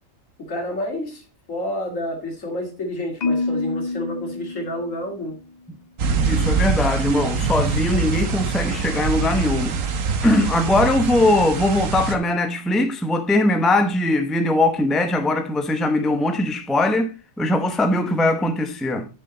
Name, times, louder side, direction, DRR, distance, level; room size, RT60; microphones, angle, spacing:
voice 1, 0.4-1.2 1.5-5.4, left 1 dB, 70° left, 2.8 m, -29 dB
Marimba xylophone, 3.2-5.4, left 3 dB, 45° left, 0.6 m, -27 dB
sound 1, 6.0-12.2, right 4 dB, 70° right, 1.4 m, -24 dB
voice 2, 6.3-9.8 10.2-17.1 17.4-19.1, left 1 dB, ahead, 0.7 m, -20 dB
8.1 x 7.1 x 3.9 m
omnidirectional pair, 1.4 m